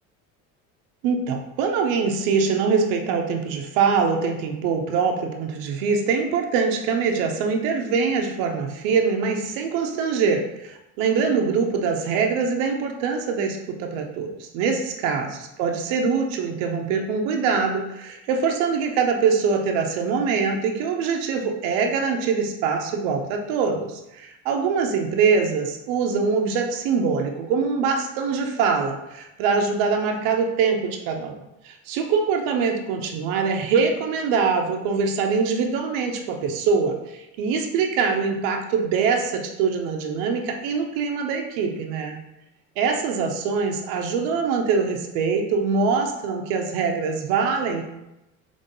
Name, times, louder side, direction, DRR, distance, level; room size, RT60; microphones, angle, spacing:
voice 1, 1.0-31.3 31.6-42.2 42.8-47.8, right 5 dB, 70° right, 3 dB, 0.8 m, -23 dB
3.6 x 3.4 x 3.9 m, 0.92 s
hypercardioid pair, 70°, 41 cm